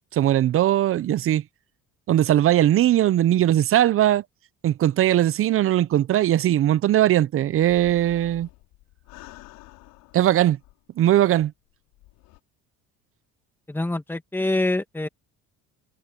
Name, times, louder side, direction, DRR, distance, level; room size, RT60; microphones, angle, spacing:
voice 1, 0.1-1.4 2.1-4.2 4.6-8.5 10.1-10.6 11.0-11.5, right 12 dB, 40° right, 0.6 m, -19 dB
sound 1, 7.5-11.0 11.4-11.5 11.9-12.4, left 20 dB, 85° left, 3.8 m, -49 dB
voice 2, 13.7-15.1, left 2 dB, 5° left, 1.9 m, -25 dB
cardioid pair, 120°, 33 cm